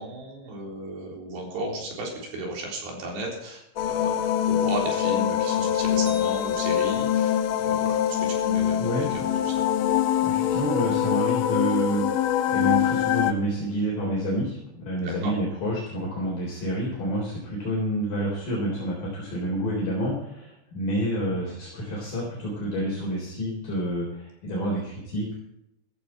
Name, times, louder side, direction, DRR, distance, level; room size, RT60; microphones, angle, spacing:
voice 1, 0.0-9.6 15.0-15.3, right 1 dB, 65° right, -1 dB, 5.9 m, -35 dB
sound 1, 3.8-13.3, left 10 dB, 85° left, 3.5 m, -24 dB
sound 2, 6.1-7.4, left 3 dB, 35° right, 2.6 m, -46 dB
voice 2, 8.8-9.1 10.2-25.3, right 1 dB, 50° left, -4 dB, 5.2 m, -29 dB
15.5 x 14.5 x 4.4 m, 0.82 s
omnidirectional pair, 5.4 m